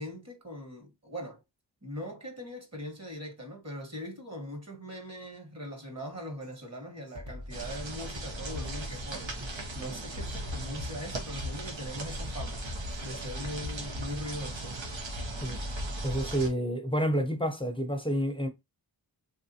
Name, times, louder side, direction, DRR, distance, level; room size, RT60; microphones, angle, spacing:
voice 1, 0.0-1.4 1.8-14.8, equal, 35° right, 1.2 m, -41 dB
Drum kit, 6.4-6.6 7.1-14.3, left 1 dB, 55° right, 1.0 m, -44 dB
sound 1, 7.5-16.5, right 1 dB, 90° right, 0.8 m, -37 dB
voice 2, 16.0-18.5, equal, 10° left, 0.5 m, -29 dB
3.4 x 2.4 x 2.7 m
wide cardioid pair, 65°, 44 cm